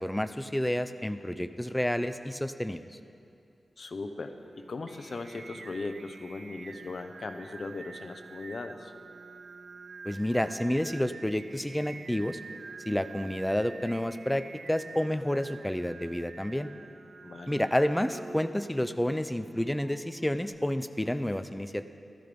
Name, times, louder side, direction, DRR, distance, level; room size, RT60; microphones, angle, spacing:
voice 1, 0.0-2.8 10.0-12.4 12.8-16.7 17.5-21.9, left 1 dB, 5° left, 10 dB, 0.5 m, -30 dB
voice 2, 3.8-8.9 17.2-17.6, left 3 dB, 55° left, 7 dB, 0.9 m, -38 dB
Singing, 4.4-20.6, right 4 dB, 60° right, 0.4 m, -48 dB
13.0 x 13.0 x 5.2 m, 2.5 s
wide cardioid pair, 115°, 0 cm